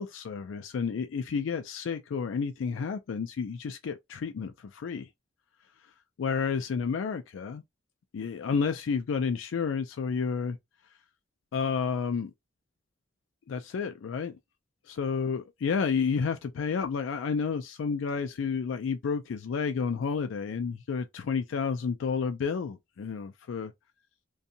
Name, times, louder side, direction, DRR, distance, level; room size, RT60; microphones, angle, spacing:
voice 1, 0.0-5.1 6.2-7.6 8.1-10.6 11.5-12.3 13.5-14.4 15.0-23.7, left 5 dB, 90° left, 0.4 m, -31 dB
2.7 x 2.3 x 2.5 m
head